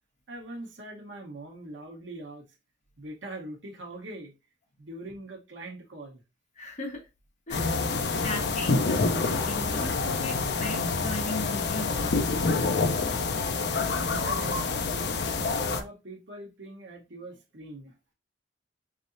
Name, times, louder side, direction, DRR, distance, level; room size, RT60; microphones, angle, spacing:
voice 1, 0.3-2.4 3.0-4.3 4.8-6.2 13.9-15.1 15.6-17.9, right 2 dB, 80° right, 1.1 m, -42 dB
voice 2, 6.5-7.1 7.5-8.9 9.4-12.4, left 1 dB, 40° left, 1.4 m, -37 dB
sound 1, 7.5-15.8, left 3 dB, 60° left, 0.5 m, -27 dB
4.0 x 3.4 x 2.6 m
head